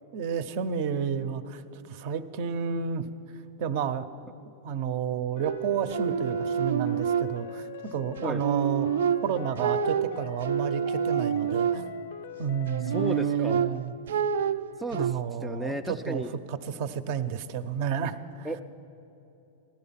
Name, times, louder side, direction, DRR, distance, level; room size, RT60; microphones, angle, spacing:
voice 1, 0.1-3.1 3.3-4.1 4.6-8.9 9.2-11.9 12.4-13.9 14.9-16.2 16.5-18.5, right 7 dB, 50° right, 12 dB, 0.7 m, -31 dB
sound 1, 5.4-13.4, left 11 dB, 70° left, 0.5 m, -42 dB
sound 2, 5.4-7.8 8.2-12.2 12.7-15.1, right 8 dB, 85° right, 0.4 m, -28 dB
voice 2, 12.9-13.7 14.8-15.1 15.4-16.3 18.4-18.6, right 1 dB, ahead, 4 dB, 0.3 m, -33 dB
16.0 x 11.5 x 5.8 m, 3.0 s
supercardioid pair, 150°, 0 cm